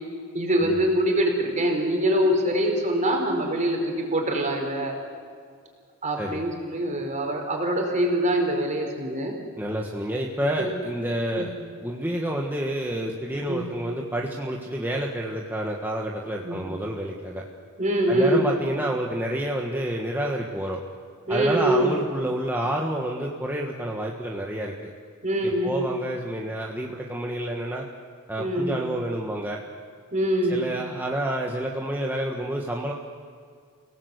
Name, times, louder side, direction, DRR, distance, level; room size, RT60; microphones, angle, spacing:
voice 1, 0.3-4.9 6.0-9.4 10.6-10.7 11.3-11.5 13.5-13.7 16.4-16.6 17.8-18.5 21.3-21.9 25.2-25.9 28.4-28.8 30.1-30.6, right 1 dB, 35° right, 2 dB, 4.7 m, -24 dB
voice 2, 9.6-11.5 11.8-17.4 18.1-20.8 21.3-24.9 25.4-27.8 28.3-29.6 30.5-32.9, right 1 dB, 10° right, -1 dB, 1.6 m, -29 dB
29.5 x 18.0 x 8.2 m, 2.1 s
head